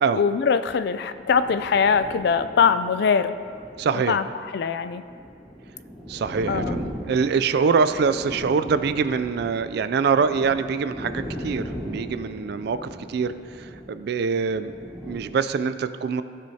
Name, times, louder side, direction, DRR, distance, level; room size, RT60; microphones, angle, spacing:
voice 1, 0.1-3.3 3.9-5.0 6.5-6.8, left 6 dB, 60° left, 12 dB, 0.3 m, -22 dB
sound 1, 1.0-15.2, equal, ahead, 1.1 m, -38 dB
voice 2, 3.8-4.2 6.1-14.7 15.1-16.2, right 5 dB, 60° right, 12 dB, 0.3 m, -24 dB
15.0 x 6.4 x 2.8 m, 2.3 s
head